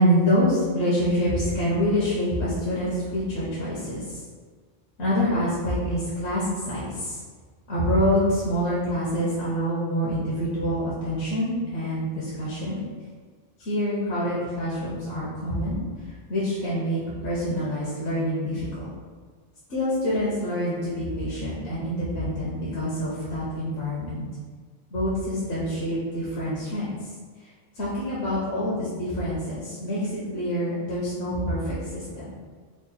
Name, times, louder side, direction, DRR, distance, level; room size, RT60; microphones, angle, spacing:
voice 1, 0.0-4.2 5.0-7.2 7.7-12.8 13.6-18.9 19.7-24.2 24.9-27.1 27.4-32.3, equal, 65° left, -8 dB, 1.1 m, -26 dB
3.6 x 2.1 x 4.1 m, 1.5 s
omnidirectional pair, 1.2 m